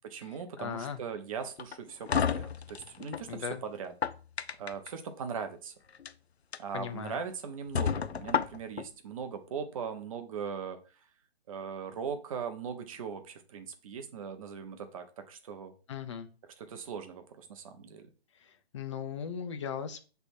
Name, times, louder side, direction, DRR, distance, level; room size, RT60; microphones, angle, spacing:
voice 1, 0.0-3.9 4.5-5.7 6.6-10.8 11.5-15.7 16.6-18.1, right 6 dB, 35° right, 7 dB, 0.9 m, -39 dB
voice 2, 0.6-1.0 3.3-3.6 6.7-7.2 15.9-16.3 18.7-20.1, left 7 dB, 30° left, 8 dB, 0.6 m, -37 dB
Wooden Door, 1.6-3.3 3.8-4.9 5.9-6.1 6.5-6.6 7.1-7.2 7.7-8.9, left 7 dB, 85° left, 0.6 m, -31 dB
6.8 x 3.5 x 4.3 m, 0.36 s
figure-of-eight pair, 140°, 31 cm